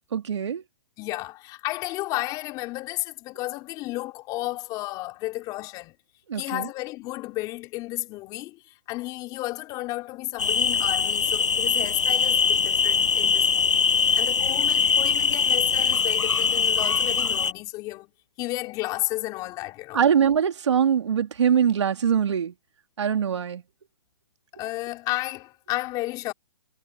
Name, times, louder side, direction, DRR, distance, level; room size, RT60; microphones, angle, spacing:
voice 1, 0.1-0.6 6.3-6.7 19.9-22.5 23.0-23.6, right 8 dB, 75° right, 3.0 m, -22 dB
voice 2, 1.0-6.0 6.4-18.1 18.4-20.0 24.5-26.3, left 19 dB, 25° left, 4.5 m, -33 dB
sound 1, 10.4-17.5, left 6 dB, 85° left, 7.1 m, -22 dB
hypercardioid pair, 150°, 15 cm